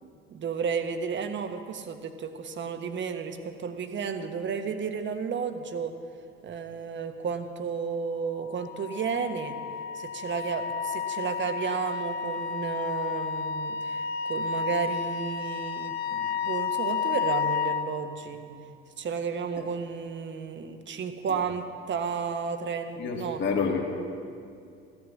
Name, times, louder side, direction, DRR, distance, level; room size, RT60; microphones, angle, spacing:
voice 1, 0.0-6.0 6.4-9.6 9.9-18.6 19.0-23.4, right 6 dB, 35° right, 8 dB, 1.3 m, -33 dB
Wind instrument woodwind instrument, 8.4-17.9, left 6 dB, 75° left, 0.9 m, -31 dB
voice 2, 23.0-23.8, left 5 dB, 35° left, -1 dB, 2.2 m, -28 dB
15.0 x 10.0 x 7.3 m, 2.4 s
figure-of-eight pair, 60°, 31 cm